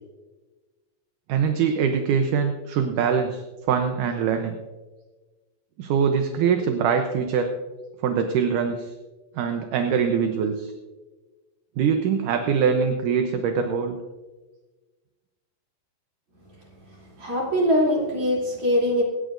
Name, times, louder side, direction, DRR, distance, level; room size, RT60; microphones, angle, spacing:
voice 1, 1.3-3.4 3.7-4.6 5.8-7.5 8.0-8.9 9.4-10.7 11.8-14.0, right 6 dB, 75° right, 6 dB, 2.2 m, -23 dB
voice 2, 17.0-19.0, equal, 40° right, -3 dB, 4.0 m, -22 dB
25.0 x 11.0 x 2.6 m, 1.3 s
omnidirectional pair, 4.1 m